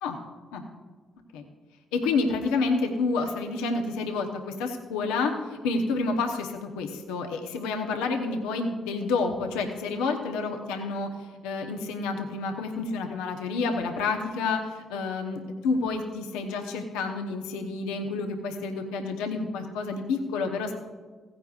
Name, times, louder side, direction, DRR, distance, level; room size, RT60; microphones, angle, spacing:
voice 1, 1.9-11.1 11.4-20.7, left 4 dB, 85° left, 3 dB, 0.9 m, -29 dB
16.0 x 9.9 x 2.4 m, 1.4 s
hypercardioid pair, 45°, 0 cm